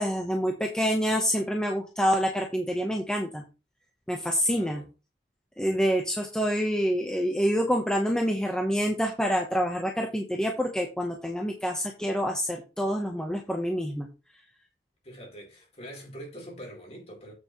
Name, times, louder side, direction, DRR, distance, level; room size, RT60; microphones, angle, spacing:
voice 1, 0.0-3.4 4.1-4.8 5.6-14.1, equal, 5° left, 1.0 m, -27 dB
voice 2, 4.4-4.9 15.0-17.3, equal, 35° left, 4.0 m, -44 dB
8.1 x 7.8 x 3.1 m
head